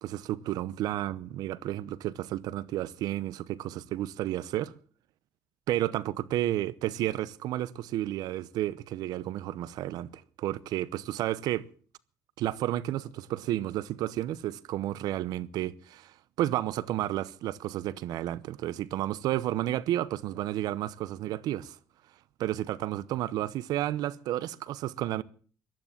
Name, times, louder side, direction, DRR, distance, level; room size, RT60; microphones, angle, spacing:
voice 1, 0.0-4.7 5.7-11.6 12.4-21.8 22.4-25.2, right 13 dB, 80° right, 0.8 m, -32 dB
15.0 x 12.5 x 7.3 m
cardioid pair, 130°, 7 cm